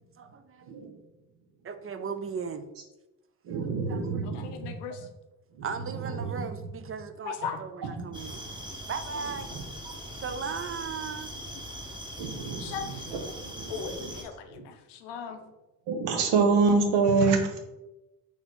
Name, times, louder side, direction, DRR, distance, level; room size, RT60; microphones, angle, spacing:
voice 1, 0.2-0.7 1.6-2.7 3.5-4.4 4.9-5.1 5.6-8.4 8.9-9.6 10.1-11.3, right 6 dB, 30° right, 10 dB, 0.5 m, -37 dB
voice 2, 3.5-4.5 9.9-10.0 12.2-13.2 13.6-14.0 14.5-14.6 15.9-17.5, right 4 dB, 70° right, 4 dB, 0.9 m, -26 dB
voice 3, 4.2-5.1 6.2-6.3 7.2-7.6 12.6-13.1 13.7-15.4, left 7 dB, 70° left, 7 dB, 0.7 m, -38 dB
sound 1, 8.1-14.2, equal, 10° right, 1.0 m, -41 dB
4.0 x 2.8 x 4.3 m, 0.99 s
hypercardioid pair, 45°, 43 cm